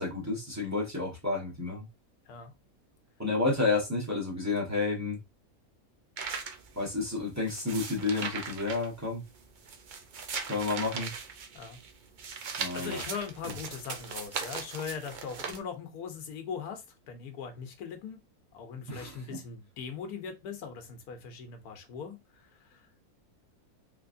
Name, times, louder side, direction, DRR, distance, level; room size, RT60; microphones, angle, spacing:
voice 1, 0.0-1.9 3.2-5.2 6.7-9.2 10.5-11.1 12.6-13.0 13.4-13.5 18.9-19.4, left 3 dB, 10° right, 1.1 m, -31 dB
sound 1, 6.2-15.6, right 5 dB, 85° right, 0.4 m, -39 dB
voice 2, 12.7-18.2 18.5-22.9, left 6 dB, 85° left, 1.3 m, -40 dB
3.5 x 3.0 x 2.5 m
omnidirectional pair, 1.6 m